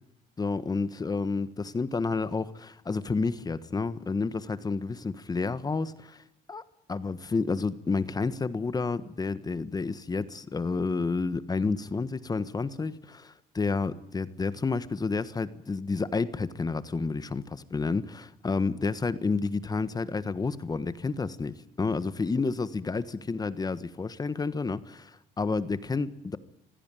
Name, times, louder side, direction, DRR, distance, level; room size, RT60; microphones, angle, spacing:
voice 1, 0.4-6.2 6.5-6.6 6.9-26.4, left 4 dB, 20° left, 1.4 m, -30 dB
25.5 x 16.0 x 9.1 m
cardioid pair, 110°, 17 cm